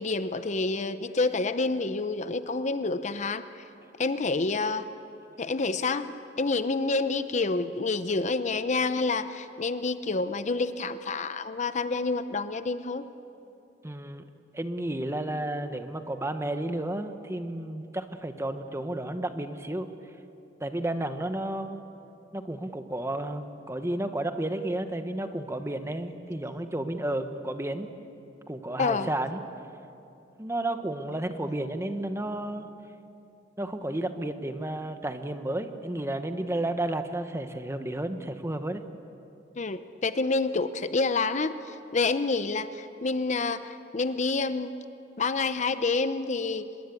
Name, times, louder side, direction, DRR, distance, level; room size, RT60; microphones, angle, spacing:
voice 1, 0.0-3.4 4.0-4.9 5.4-13.1 28.8-29.1 39.6-44.7 45.2-46.7, left 3 dB, 40° left, 11 dB, 0.7 m, -28 dB
voice 2, 13.8-14.2 14.5-19.9 20.6-21.8 22.3-27.9 28.5-29.4 30.4-32.7 33.6-38.8, right 1 dB, 15° right, 8 dB, 1.1 m, -32 dB
25.0 x 21.5 x 8.4 m, 2.7 s
head